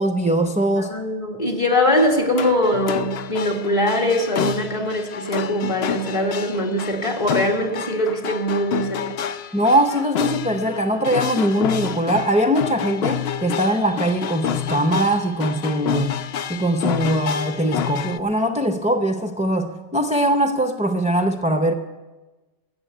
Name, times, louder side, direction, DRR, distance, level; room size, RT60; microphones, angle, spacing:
voice 1, 0.0-0.9 9.5-16.2 16.5-21.7, right 1 dB, 10° right, 4 dB, 0.4 m, -21 dB
voice 2, 0.8-9.2, left 1 dB, 25° left, 0 dB, 1.9 m, -22 dB
sound 1, 2.0-18.2, left 9 dB, 65° left, 0.8 m, -29 dB
15.0 x 6.7 x 9.2 m, 1.2 s
omnidirectional pair, 1.2 m